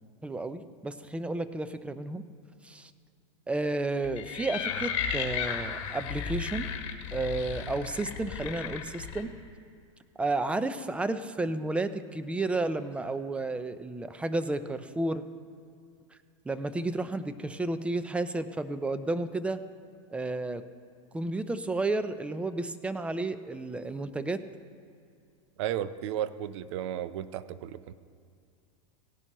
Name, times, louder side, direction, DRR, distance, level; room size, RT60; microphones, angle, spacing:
voice 1, 0.2-2.2 2.6-2.9 3.5-6.7 7.1-9.3 10.2-15.2 16.5-19.6 20.1-20.6 21.1-24.4, right 2 dB, 5° right, 12 dB, 0.4 m, -32 dB
sound 1, 4.0-9.2, left 7 dB, 65° left, 1.5 m, -34 dB
voice 2, 25.6-27.9, right 11 dB, 65° right, 15 dB, 0.6 m, -34 dB
17.5 x 10.5 x 3.0 m, 2.4 s
supercardioid pair, 125°, 16 cm